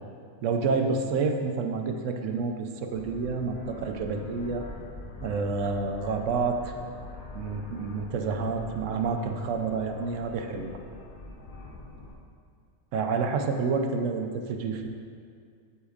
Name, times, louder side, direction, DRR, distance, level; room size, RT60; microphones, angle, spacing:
voice 1, 0.4-4.7 5.2-6.7 7.3-10.8 12.9-14.9, right 4 dB, 70° right, 4 dB, 0.9 m, -29 dB
sound 1, 2.9-12.2, left 2 dB, 45° left, 0.8 m, -44 dB
8.1 x 7.9 x 2.4 m, 2.3 s
omnidirectional pair, 1.4 m